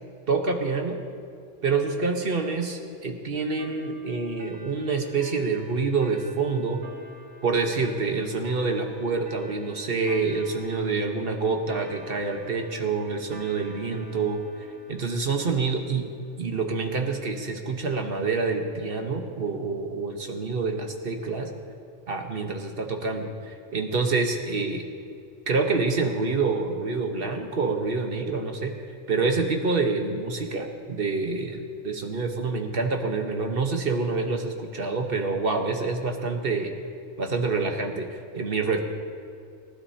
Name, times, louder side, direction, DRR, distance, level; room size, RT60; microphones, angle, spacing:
voice 1, 0.3-1.0 1.6-6.8 7.4-14.4 14.9-16.0 16.4-21.5 22.1-24.8 25.5-28.7 29.1-36.7 37.2-38.8, right 4 dB, 50° right, 3 dB, 1.4 m, -27 dB
sound 1, 3.6-16.7, right 1 dB, 85° right, 1.7 m, -49 dB
26.0 x 12.0 x 2.8 m, 2.3 s
omnidirectional pair, 1.3 m